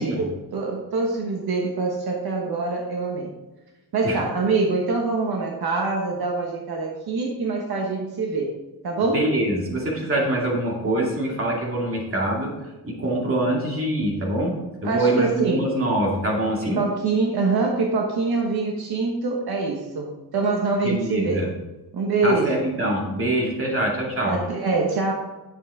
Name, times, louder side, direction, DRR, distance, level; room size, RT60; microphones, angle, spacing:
voice 1, 0.0-3.3 3.9-8.5 8.8-9.2 14.8-15.7 16.8-21.5 21.9-22.6 24.2-25.1, right 3 dB, 70° right, 0 dB, 1.4 m, -24 dB
voice 2, 9.1-14.6 14.8-16.8 20.8-21.5 22.2-24.4, right 1 dB, 35° right, -2 dB, 2.4 m, -24 dB
10.0 x 7.3 x 3.6 m, 1.1 s
wide cardioid pair, 170°, 39 cm